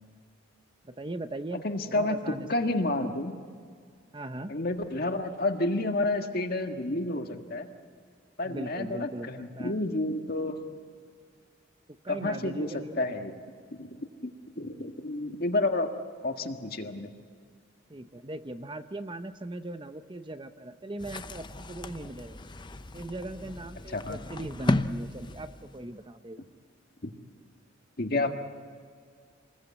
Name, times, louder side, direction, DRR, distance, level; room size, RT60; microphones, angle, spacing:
voice 1, 0.8-2.5 4.1-4.5 8.4-9.8 11.9-13.0 17.9-22.4 22.9-26.5 28.2-28.3, right 2 dB, 25° right, 10 dB, 0.7 m, -39 dB
voice 2, 1.6-2.2 2.5-3.4 4.5-7.7 8.4-10.6 12.1-12.7 12.9-13.4 13.8-15.9 16.2-17.1 23.9-24.2 27.0-27.1 28.0-28.3, left 2 dB, 50° left, 5 dB, 1.7 m, -30 dB
sound 1, 21.0-26.0, left 2 dB, 25° left, 0.6 m, -34 dB
27.5 x 21.0 x 8.4 m, 2.1 s
head